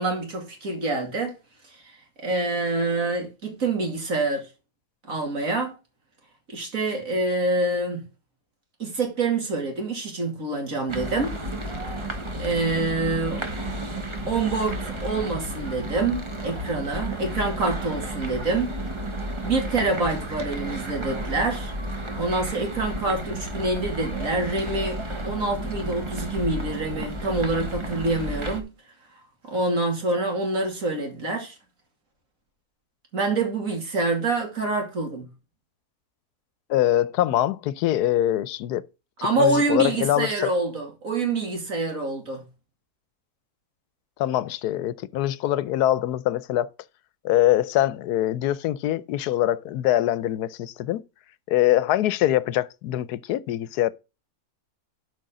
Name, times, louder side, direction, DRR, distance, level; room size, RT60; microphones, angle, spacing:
voice 1, 0.0-1.4 1.8-1.9 2.2-4.5 5.1-5.8 6.5-8.1 8.8-11.3 12.4-13.4 14.3-18.8 19.4-21.7 22.1-28.7 29.4-31.5 33.1-35.3 39.2-42.4, right 3 dB, 60° right, 3.0 m, -26 dB
sound 1, 10.9-28.6, right 1 dB, 20° right, 1.1 m, -32 dB
voice 2, 36.7-38.8 39.4-40.5 44.2-46.7 47.2-51.0 51.5-53.9, left 13 dB, 90° left, 1.2 m, -23 dB
12.0 x 5.2 x 3.8 m
omnidirectional pair, 1.6 m